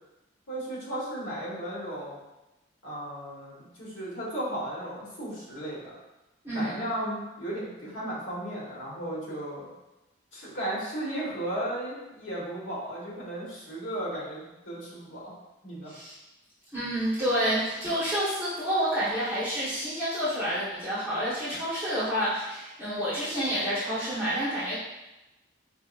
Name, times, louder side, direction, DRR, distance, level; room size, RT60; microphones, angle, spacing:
voice 1, 0.5-2.2 2.8-5.9 6.5-9.7 10.3-15.3 15.6-15.9, right 1 dB, 80° left, -5 dB, 1.5 m, -35 dB
voice 2, 16.7-24.8, equal, 10° right, -14 dB, 1.3 m, -29 dB
4.8 x 3.1 x 2.6 m, 1.0 s
head